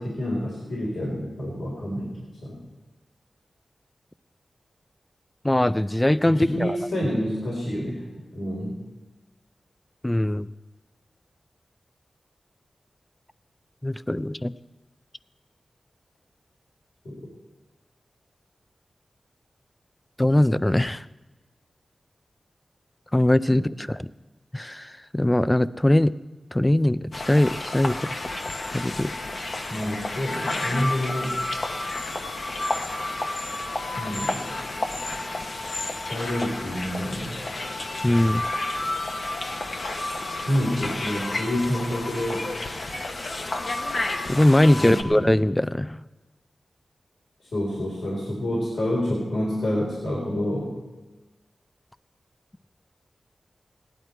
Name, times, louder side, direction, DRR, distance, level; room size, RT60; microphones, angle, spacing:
voice 1, 0.0-2.6 6.3-8.0 8.3-8.8 17.0-17.1 23.7-23.8 29.7-31.3 33.9-34.4 36.1-37.3 40.4-42.4 44.7-45.3 47.5-50.7, equal, 80° left, -5 dB, 3.9 m, -28 dB
voice 2, 5.4-6.8 10.0-10.5 13.8-14.5 20.2-21.0 23.1-24.0 24.5-26.1 26.5-28.2 28.7-29.1 38.0-38.4 44.2-46.0, left 1 dB, 15° left, 15 dB, 0.4 m, -21 dB
sound 1, 27.1-45.0, left 2 dB, 55° left, 1.0 m, -31 dB
17.0 x 11.0 x 4.5 m, 1.2 s
wide cardioid pair, 105°, 0 cm